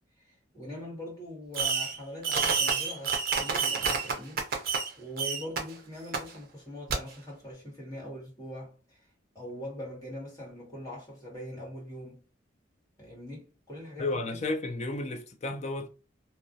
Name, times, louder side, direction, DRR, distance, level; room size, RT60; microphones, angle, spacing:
voice 1, 0.0-9.0 9.3-12.2 13.0-14.4, equal, 20° left, 1.2 m, -42 dB
Fireworks, 1.5-2.0 2.2-4.9 5.2-5.6 6.1-6.2 6.9-7.0, right 5 dB, 50° right, 0.5 m, -28 dB
voice 2, 14.0-15.9, left 2 dB, 35° left, 0.4 m, -32 dB
2.3 x 2.1 x 2.6 m
head